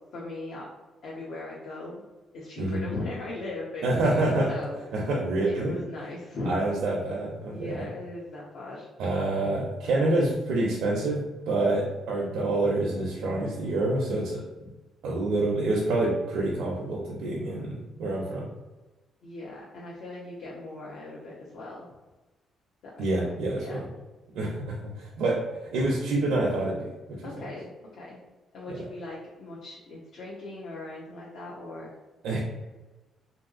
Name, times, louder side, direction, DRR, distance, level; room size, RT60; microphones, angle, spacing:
voice 1, 0.1-0.7 1.0-2.0 2.3-4.8 5.5-6.6 7.5-8.9 19.2-21.9 23.0-23.1 23.5-23.8 27.2-28.2 28.5-31.9, left 2 dB, 70° left, -5 dB, 0.7 m, -38 dB
voice 2, 3.8-4.5 4.9-5.8 6.4-7.9 9.0-14.4 15.0-18.5 23.0-23.9 24.3-25.4 25.7-27.3 32.2-32.4, right 2 dB, 85° right, -3 dB, 0.5 m, -27 dB
2.8 x 2.6 x 2.5 m, 1.2 s
cardioid pair, 90°, 0 cm